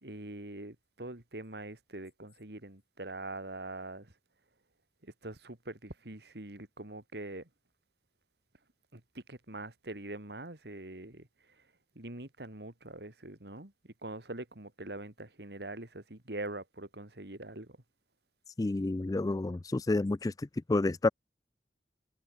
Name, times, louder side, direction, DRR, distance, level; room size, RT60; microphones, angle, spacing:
voice 1, 0.0-4.1 5.0-7.5 8.9-11.3 12.0-17.8, right 2 dB, 65° right, 2.7 m, -43 dB
voice 2, 18.6-21.1, left 2 dB, 20° left, 0.3 m, -30 dB
head